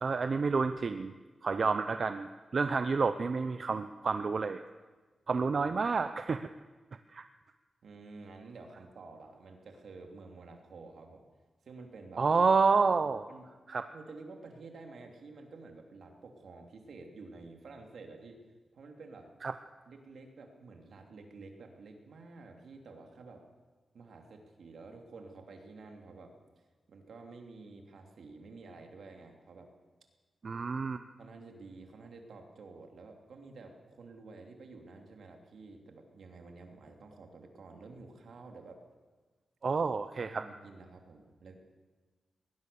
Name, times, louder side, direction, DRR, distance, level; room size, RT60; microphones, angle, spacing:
voice 1, 0.0-1.1 1.4-2.3 2.5-4.6 5.3-6.5 7.1-7.2 12.2-13.3 13.7-13.9 19.4-19.5 30.4-31.0 39.6-40.5, right 4 dB, 45° right, 9 dB, 0.7 m, -29 dB
voice 2, 7.8-11.2 11.6-12.3 13.3-13.5 13.9-18.4 18.7-19.3 19.9-23.4 23.9-26.3 26.9-29.7 31.2-38.8 40.2-41.5, right 3 dB, 70° right, 3 dB, 3.1 m, -50 dB
21.0 x 19.0 x 7.0 m, 1.3 s
wide cardioid pair, 155°, 0 cm